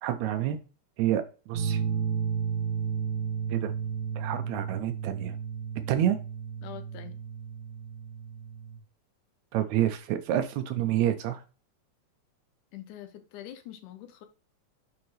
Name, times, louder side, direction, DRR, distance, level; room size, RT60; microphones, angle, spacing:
voice 1, 0.0-0.6 1.0-1.2 1.5-1.8 3.5-3.7 4.2-5.4 5.9-6.2 9.5-11.4, right 11 dB, 80° right, 1.8 m, -28 dB
sound 1, 1.5-8.8, right 7 dB, 55° right, 1.2 m, -33 dB
voice 2, 6.6-7.2 12.7-14.3, left 11 dB, 85° left, 2.3 m, -44 dB
8.7 x 3.7 x 3.1 m
omnidirectional pair, 3.6 m